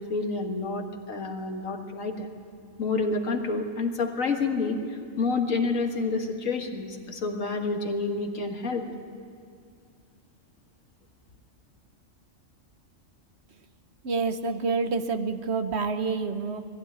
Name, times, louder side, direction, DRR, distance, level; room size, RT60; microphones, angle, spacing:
voice 1, 0.0-2.3 2.8-8.9, left 3 dB, 80° left, 3 dB, 2.1 m, -29 dB
voice 2, 14.0-16.7, right 4 dB, 60° right, 8 dB, 1.2 m, -28 dB
20.5 x 15.5 x 10.0 m, 2.2 s
omnidirectional pair, 1.3 m